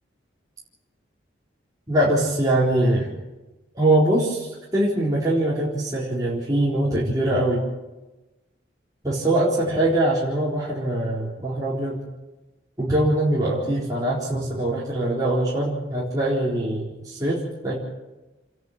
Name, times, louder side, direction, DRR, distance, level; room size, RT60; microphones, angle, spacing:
voice 1, 1.9-3.1 3.7-7.6 9.0-12.0 12.8-17.7, right 1 dB, 20° right, -7 dB, 4.2 m, -22 dB
28.5 x 11.0 x 9.2 m, 1.1 s
head